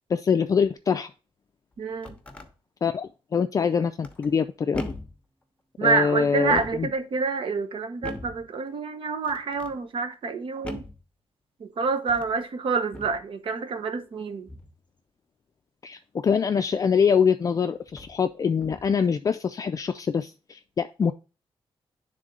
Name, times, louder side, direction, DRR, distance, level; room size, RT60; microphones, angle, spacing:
voice 1, 0.1-1.1 2.8-4.8 5.8-6.9 15.8-21.1, left 6 dB, 35° left, 0.3 m, -24 dB
sound 1, 1.7-2.5 4.0-4.4 4.7-5.2 6.4-6.9 8.0-8.5 9.2-9.8 10.6-11.0 12.0-12.4 12.9-13.2 14.5-14.8 16.9-17.0 17.9-18.2 18.6-19.0, left 1 dB, 10° left, 0.9 m, -39 dB
voice 2, 1.8-2.1 5.8-10.8 11.6-14.5, right 4 dB, 65° right, 0.9 m, -27 dB
10.5 x 3.6 x 3.8 m
wide cardioid pair, 130°, 10 cm